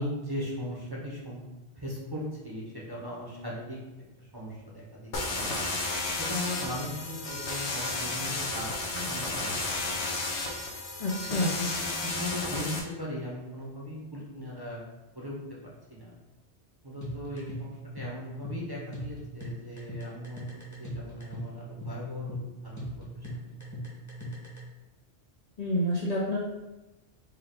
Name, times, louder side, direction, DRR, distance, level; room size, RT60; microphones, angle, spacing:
voice 1, 0.0-1.4 1.8-3.8 4.3-5.5 6.3-8.7 8.9-9.5 11.6-11.7 12.0-14.8 15.1-15.4 15.9-16.2 16.8-20.5 20.8-22.9, left 1 dB, 25° right, -5 dB, 0.7 m, -38 dB
sound 1, 5.1-12.8, left 2 dB, 85° left, 1.0 m, -32 dB
voice 2, 11.0-11.5 25.6-26.4, left 1 dB, 45° left, -5 dB, 0.6 m, -28 dB
sound 2, 17.0-24.6, equal, 15° left, 1.0 m, -39 dB
4.4 x 2.3 x 3.7 m, 1.0 s
omnidirectional pair, 1.1 m